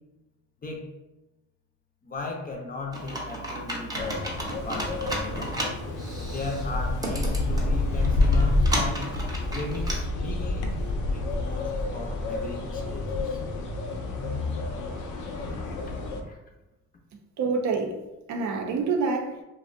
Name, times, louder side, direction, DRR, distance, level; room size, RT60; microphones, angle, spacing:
voice 1, 2.0-4.3 4.6-5.6 6.3-9.1 9.5-10.8 11.1-13.4 15.9-16.4, left 3 dB, 30° left, 0.5 m, -36 dB
Computer keyboard, 2.9-9.9, right 1 dB, 15° right, 0.6 m, -34 dB
sound 1, 4.0-16.2, left 2 dB, 85° left, 0.5 m, -28 dB
voice 2, 17.4-19.4, right 4 dB, 70° right, 0.5 m, -27 dB
2.5 x 2.0 x 2.4 m
cardioid pair, 90°, 30 cm